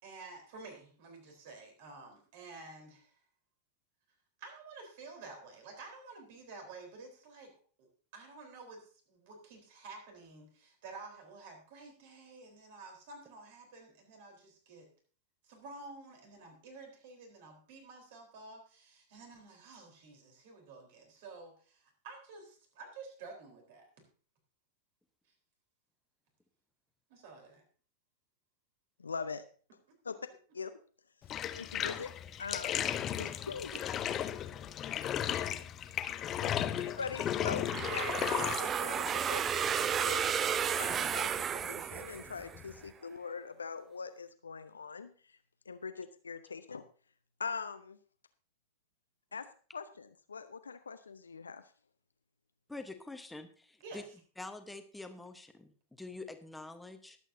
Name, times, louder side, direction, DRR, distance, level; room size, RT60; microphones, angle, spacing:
voice 1, 0.0-3.2 4.4-7.5 7.8-7.9 8.1-14.9 15.4-23.9 27.1-27.6 31.7-31.8 33.7-34.5 53.8-54.1, right 3 dB, 50° right, 3 dB, 3.9 m, -51 dB
voice 2, 29.0-29.4 30.1-30.2 30.5-30.7 31.5-32.1 32.4-32.8 33.2-33.7 36.4-36.6 36.8-41.3 41.5-45.1 45.7-46.8 47.4-48.0 49.3-49.5 49.7-51.6, left 5 dB, 75° left, 10 dB, 0.6 m, -42 dB
Bathtub (filling or washing), 31.2-42.9, left 10 dB, 30° left, 0.7 m, -36 dB
sound 1, 37.7-42.6, right 8 dB, 25° right, 0.4 m, -33 dB
voice 3, 52.7-54.0 54.4-57.2, left 2 dB, 5° left, 7 dB, 1.1 m, -46 dB
20.5 x 8.3 x 2.7 m, 0.42 s
figure-of-eight pair, 90°, 0 cm